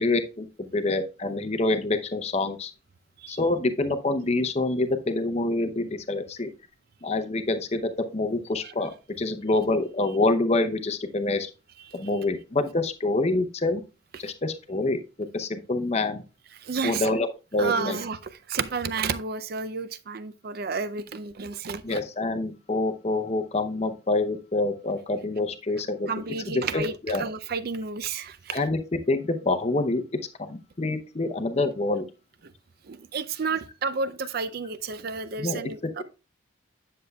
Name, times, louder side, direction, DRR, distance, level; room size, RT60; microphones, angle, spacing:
voice 1, 0.0-2.7 3.3-6.5 7.0-11.5 11.9-13.8 14.2-16.2 16.8-18.0 21.8-26.1 26.5-27.2 28.5-30.0 30.5-32.1 35.4-35.6, left 2 dB, 30° left, 0.6 m, -26 dB
voice 2, 16.6-17.1 17.6-18.2 18.5-22.0 26.0-28.6 32.9-36.0, right 5 dB, 50° right, 0.4 m, -31 dB
9.9 x 6.6 x 2.3 m
head